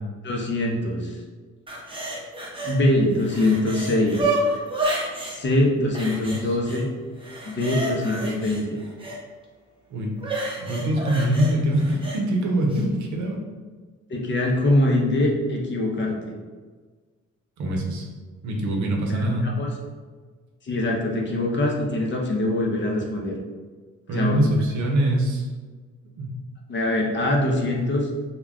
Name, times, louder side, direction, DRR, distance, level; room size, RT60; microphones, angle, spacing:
voice 1, 0.2-1.2 2.6-4.3 5.3-6.9 7.4-8.8 14.1-16.2 19.1-19.7 20.6-23.4 24.1-24.4 26.7-28.1, left 1 dB, 40° left, 0 dB, 0.6 m, -23 dB
sound 1, 1.7-2.8 3.1-5.4 5.9-6.8 7.2-9.2 10.2-12.2 12.7-12.8, right 1 dB, 15° right, 0.7 m, -29 dB
voice 2, 10.6-13.4 17.6-18.1 18.4-19.5 24.1-25.5 26.2-26.3, right 1 dB, 70° right, 1 dB, 0.7 m, -23 dB
2.2 x 2.2 x 3.6 m, 1.4 s
cardioid pair, 90°, 30 cm